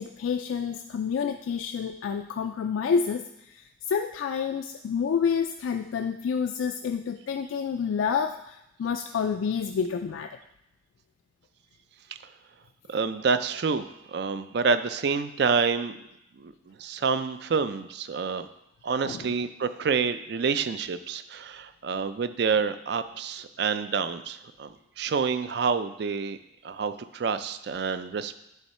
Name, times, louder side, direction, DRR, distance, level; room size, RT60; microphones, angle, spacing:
voice 1, 0.0-10.4 19.0-19.3, left 6 dB, 85° left, 5 dB, 0.3 m, -29 dB
voice 2, 12.9-15.9 16.4-18.5 18.8-26.4 26.6-28.4, right 5 dB, 55° right, 12 dB, 0.4 m, -28 dB
9.9 x 3.7 x 4.2 m, 0.84 s
head